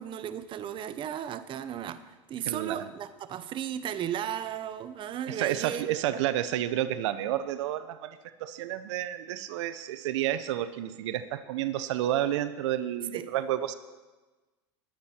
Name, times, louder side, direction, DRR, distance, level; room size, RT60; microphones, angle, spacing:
voice 1, 0.0-6.2 13.1-13.3, right 10 dB, 35° right, 12 dB, 0.8 m, -35 dB
voice 2, 2.5-2.9 5.3-13.7, right 12 dB, 75° right, 13 dB, 0.8 m, -30 dB
20.5 x 9.0 x 4.4 m, 1.2 s
supercardioid pair, 120°, 15 cm